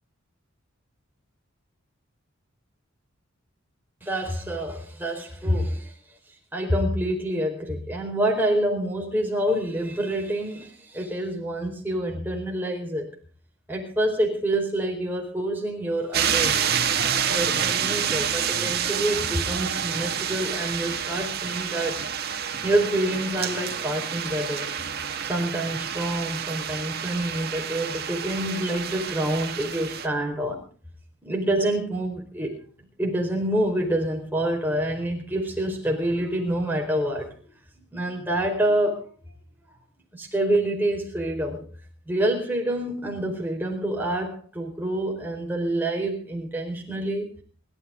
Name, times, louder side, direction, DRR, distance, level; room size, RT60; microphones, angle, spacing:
voice 1, 4.0-5.9 6.5-13.1 13.7-22.0 22.6-24.7 25.2-30.6 31.2-32.6 33.0-37.5 37.9-39.1 40.1-41.7 42.1-47.3, right 1 dB, 10° right, 1 dB, 4.4 m, -27 dB
sound 1, 16.1-30.1, right 8 dB, 50° right, 2.0 m, -28 dB
27.5 x 13.0 x 3.8 m, 0.40 s
head